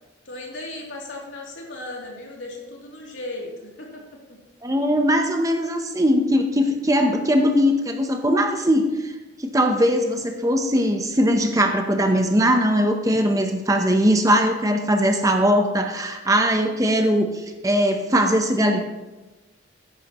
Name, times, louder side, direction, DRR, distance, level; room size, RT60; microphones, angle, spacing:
voice 1, 0.2-4.0, left 2 dB, 70° left, -2 dB, 2.9 m, -36 dB
voice 2, 4.6-9.1 9.4-18.8, equal, 15° right, 4 dB, 0.8 m, -20 dB
14.0 x 10.5 x 3.0 m, 1.1 s
head